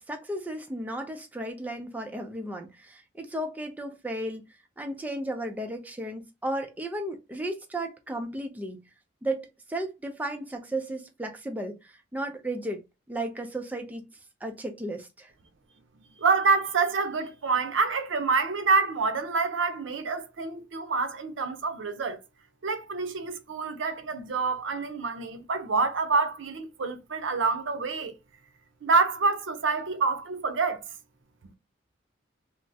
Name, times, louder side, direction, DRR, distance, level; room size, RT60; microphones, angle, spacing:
voice 1, 0.0-4.4 4.8-8.8 9.2-14.1 14.4-15.3, right 1 dB, 10° right, 0.3 m, -34 dB
voice 2, 16.2-22.2 22.6-28.1 28.8-30.8, right 4 dB, 85° right, 0.5 m, -27 dB
3.3 x 2.0 x 2.6 m
head